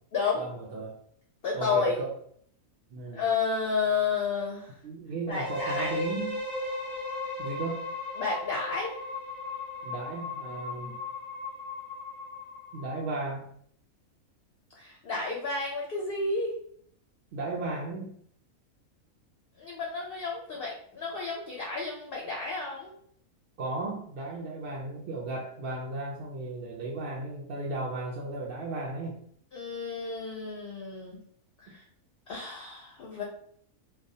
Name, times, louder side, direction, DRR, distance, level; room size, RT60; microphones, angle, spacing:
voice 1, 0.4-1.0 1.5-2.1 2.9-3.2 4.8-6.4 7.4-7.8 9.8-11.0 12.7-13.5 17.3-18.2 23.6-29.2, right 3 dB, 65° right, -4 dB, 0.5 m, -35 dB
voice 2, 1.4-2.0 3.1-4.7 5.3-6.0 8.2-8.9 14.8-16.5 19.6-22.9 29.5-31.2 31.6-31.8 32.3-33.2, left 4 dB, 60° left, -2 dB, 0.6 m, -31 dB
sound 1, 5.3-13.1, left 3 dB, 35° right, 0.8 m, -36 dB
2.3 x 2.2 x 2.6 m, 0.62 s
omnidirectional pair, 1.5 m